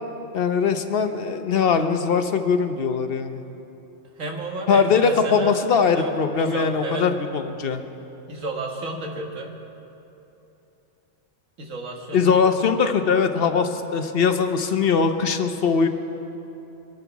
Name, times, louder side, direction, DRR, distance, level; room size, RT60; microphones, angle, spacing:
voice 1, 0.3-3.4 4.7-7.8 12.1-15.9, left 5 dB, 50° left, 8 dB, 1.0 m, -21 dB
voice 2, 4.2-5.6 5.9-6.1 6.4-7.1 8.3-9.6 11.6-12.3, right 2 dB, 85° right, 1 dB, 2.0 m, -32 dB
23.5 x 11.0 x 4.7 m, 3.0 s
omnidirectional pair, 1.3 m